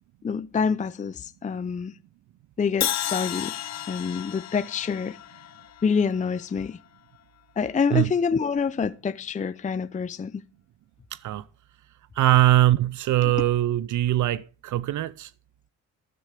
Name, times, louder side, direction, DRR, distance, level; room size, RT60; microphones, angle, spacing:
voice 1, 0.2-1.9 2.6-3.6 3.9-5.2 5.8-6.8 7.6-10.4 13.2-13.3, left 5 dB, 20° left, 0.5 m, -27 dB
Crash cymbal, 2.8-6.8, left 11 dB, 55° left, 0.9 m, -33 dB
voice 2, 12.2-15.3, right 14 dB, 65° right, 0.6 m, -21 dB
12.5 x 10.5 x 4.9 m
supercardioid pair, 70°, 33 cm